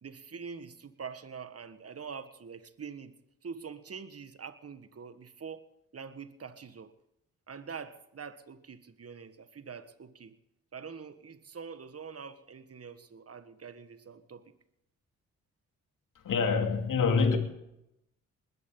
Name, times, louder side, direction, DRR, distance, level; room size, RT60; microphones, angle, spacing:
voice 1, 0.0-6.9 7.5-10.3 10.7-14.4, right 6 dB, 40° right, 1.6 m, -45 dB
voice 2, 16.1-17.4, left 5 dB, 60° left, 2.6 m, -26 dB
20.0 x 14.5 x 3.9 m
hypercardioid pair, 40°, 35 cm